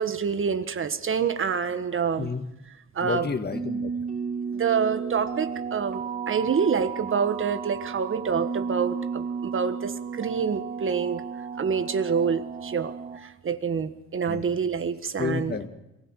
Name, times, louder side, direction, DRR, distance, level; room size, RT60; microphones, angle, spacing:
voice 1, 0.0-2.3 2.9-3.3 4.5-6.0 6.3-11.2 11.6-12.9 13.2-15.6, right 6 dB, 45° right, 11 dB, 1.5 m, -27 dB
voice 2, 3.0-3.9 14.3-14.4 15.2-15.7, left 5 dB, 35° left, 9 dB, 1.9 m, -30 dB
sound 1, 3.5-13.2, right 6 dB, 25° right, 4.1 m, -33 dB
23.0 x 16.0 x 7.4 m, 0.93 s
cardioid pair, 90°, 30 cm